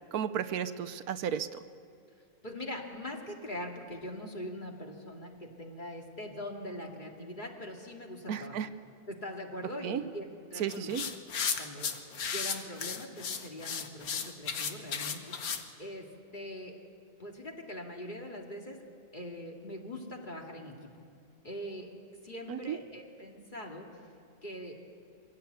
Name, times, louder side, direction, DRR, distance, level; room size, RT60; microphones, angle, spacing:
voice 1, 0.1-1.6 8.3-8.7 9.8-10.0 10.6-11.0 22.5-22.8, right 8 dB, 80° right, 12 dB, 1.3 m, -33 dB
voice 2, 2.4-8.6 9.1-10.9 11.6-15.3 15.8-16.1 16.3-16.8 17.2-18.8 19.1-20.9 21.4-21.9 22.2-24.0 24.4-24.8, left 1 dB, 30° left, 0 dB, 2.5 m, -42 dB
sound 1, 10.7-15.6, left 6 dB, 70° left, 1.7 m, -35 dB
24.0 x 16.5 x 8.2 m, 2.4 s
omnidirectional pair, 1.6 m